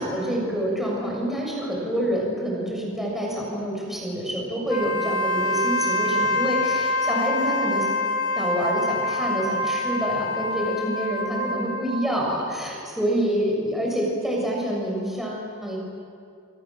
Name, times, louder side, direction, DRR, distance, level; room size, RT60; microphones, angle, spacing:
voice 1, 0.0-7.9 8.4-15.8, equal, ahead, -3 dB, 7.0 m, -27 dB
Wind instrument woodwind instrument, 4.6-12.1, left 1 dB, 85° left, 2.2 m, -26 dB
28.5 x 25.5 x 7.6 m, 2.3 s
head